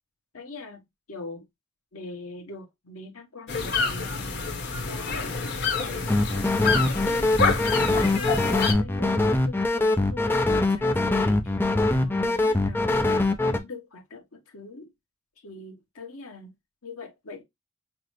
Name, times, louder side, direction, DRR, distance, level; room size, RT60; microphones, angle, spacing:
voice 1, 0.3-0.8 1.1-1.5 1.9-4.3 4.8-10.3 10.7-11.5 11.8-13.1 13.4-14.9 15.4-16.5 16.8-17.4, left 2 dB, 90° left, 1.2 m, -42 dB
sound 1, 3.5-8.7, left 4 dB, 55° left, 1.0 m, -28 dB
sound 2, 6.1-13.6, left 2 dB, 10° left, 0.4 m, -23 dB
5.8 x 2.0 x 3.1 m
head